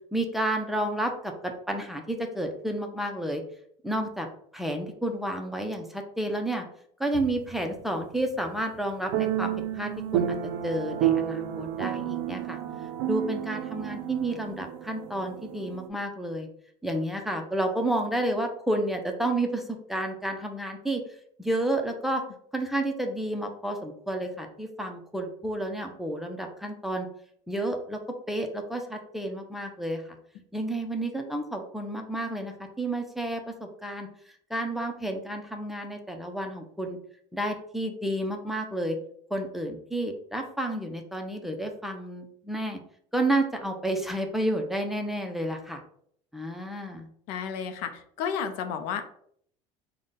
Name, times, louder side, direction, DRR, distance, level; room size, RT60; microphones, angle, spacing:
voice 1, 0.1-3.4 3.8-4.3 4.5-6.6 7.0-10.2 10.6-12.6 13.1-16.5 16.8-21.0 21.4-22.2 22.5-27.1 27.5-28.0 28.3-30.0 30.5-34.1 34.5-37.0 37.3-39.0 39.3-42.8 43.1-45.8 46.3-47.1, right 1 dB, ahead, 3 dB, 0.5 m, -30 dB
sound 1, 7.1-7.6 9.1-15.9, right 11 dB, 80° right, 0.4 m, -30 dB
voice 2, 47.3-49.0, left 7 dB, 80° left, 8 dB, 0.5 m, -32 dB
3.7 x 2.2 x 3.8 m, 0.66 s
supercardioid pair, 105°, 15 cm